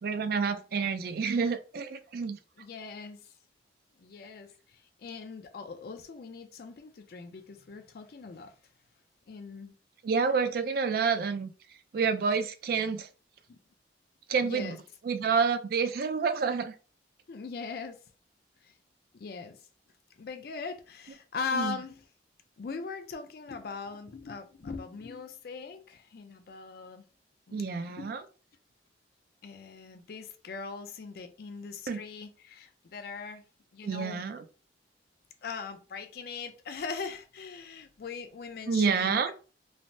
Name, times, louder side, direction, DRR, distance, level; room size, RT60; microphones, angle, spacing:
voice 1, 0.0-2.4 10.0-11.5 11.9-13.1 14.3-14.7 15.0-16.7 21.5-21.8 27.5-28.2 31.9-32.0 33.8-34.4 38.7-39.3, right 5 dB, 55° right, 0.3 m, -28 dB
voice 2, 2.6-3.3 4.0-8.5 9.3-9.7 13.5-13.6 14.4-14.8 17.3-18.0 18.6-18.7 19.1-19.6 20.2-22.0 22.6-27.1 27.5-28.2 29.4-33.4 33.7-34.2 35.4-39.3, left 5 dB, 60° left, 0.4 m, -40 dB
3.2 x 2.0 x 2.6 m
head